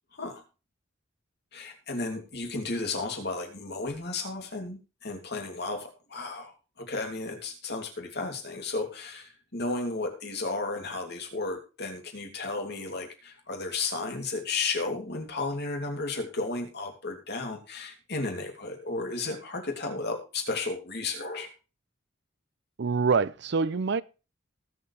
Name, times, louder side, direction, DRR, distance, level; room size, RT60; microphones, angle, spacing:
voice 1, 0.1-0.4 1.5-21.5, left 3 dB, 60° left, 2.9 m, -33 dB
voice 2, 22.8-24.0, right 5 dB, 60° right, 0.5 m, -25 dB
19.0 x 7.3 x 3.4 m
head